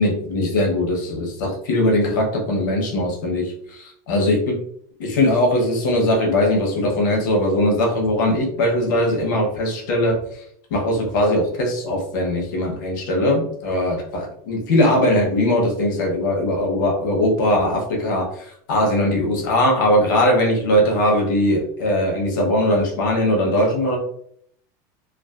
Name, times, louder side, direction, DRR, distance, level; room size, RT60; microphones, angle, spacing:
voice 1, 0.0-4.5 5.0-10.2 10.7-24.0, left 1 dB, 75° left, 1 dB, 0.8 m, -20 dB
2.4 x 2.3 x 2.3 m, 0.65 s
supercardioid pair, 175°, 10 cm